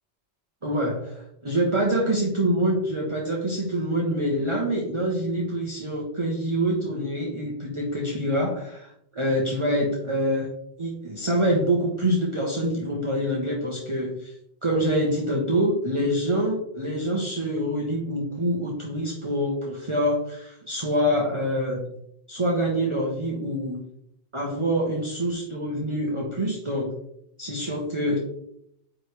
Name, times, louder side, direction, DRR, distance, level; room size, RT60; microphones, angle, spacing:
voice 1, 0.6-10.5 10.8-14.3 14.6-21.8 22.3-23.8 24.3-26.9 27.4-28.2, equal, 30° right, -3 dB, 1.0 m, -26 dB
8.8 x 3.4 x 3.3 m, 0.74 s
omnidirectional pair, 1.1 m